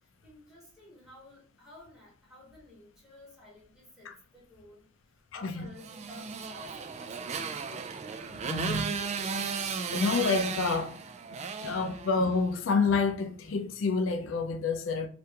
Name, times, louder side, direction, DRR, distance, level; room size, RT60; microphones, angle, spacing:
voice 1, 0.2-7.9 8.3-8.5, left 1 dB, ahead, 1.4 m, -53 dB
voice 2, 5.3-5.7 8.3-9.0 9.4-9.5 9.9-11.0 11.6-15.1, left 4 dB, 90° left, 0.4 m, -28 dB
Motorcycle, 5.8-12.5, right 5 dB, 35° right, 0.3 m, -35 dB
2.8 x 2.5 x 3.3 m
head